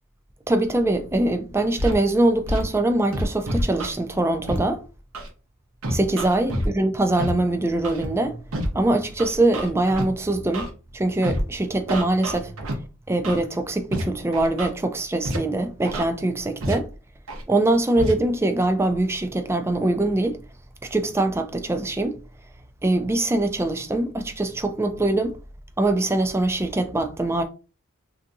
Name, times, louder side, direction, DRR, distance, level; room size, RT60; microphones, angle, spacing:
voice 1, 0.5-4.8 5.9-8.4 8.7-12.8 13.1-16.9 17.5-20.4 20.9-22.2 22.8-25.4 25.8-27.4, right 2 dB, 10° right, 0.3 m, -23 dB
Scratching (performance technique), 1.8-1.9 2.5-2.6 3.1-3.9 4.5-4.6 5.1-5.3 5.8-6.7 7.2-7.3 7.8-8.1 8.5-8.7 9.2-10.0 10.5-10.7 11.2-11.4 11.9-12.7 13.2-13.4 13.9-14.0 14.3-14.7 15.2-15.4 15.8-16.0 16.6-16.7 17.3-17.4 18.0-18.1, equal, 80° right, 0.9 m, -27 dB
3.4 x 2.7 x 2.6 m
head